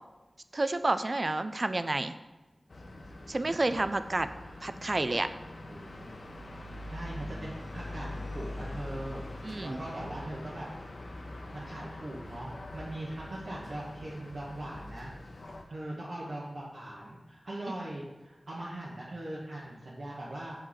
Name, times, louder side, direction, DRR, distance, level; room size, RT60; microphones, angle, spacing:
voice 1, 0.5-2.2 3.3-4.3 4.6-5.3 9.4-9.8, right 2 dB, 40° right, 11 dB, 0.3 m, -30 dB
sound 1, 2.7-15.6, left 1 dB, 60° left, 0.6 m, -43 dB
voice 2, 5.7-6.0 6.9-9.2 9.6-10.7 11.5-15.1 15.7-20.5, right 1 dB, 70° right, -6 dB, 1.0 m, -40 dB
6.2 x 4.5 x 3.9 m, 1.1 s
wide cardioid pair, 75°, 0 cm